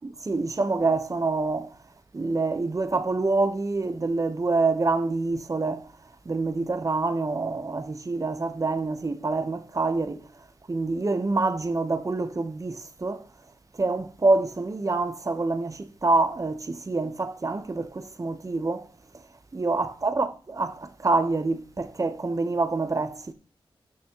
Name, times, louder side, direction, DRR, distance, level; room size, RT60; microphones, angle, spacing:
voice 1, 0.3-1.7 2.1-5.9 6.2-10.3 10.7-13.2 13.8-18.9 19.5-23.3, right 3 dB, 35° right, 1.1 m, -26 dB
12.5 x 6.2 x 3.1 m
cardioid pair, 75°, 10 cm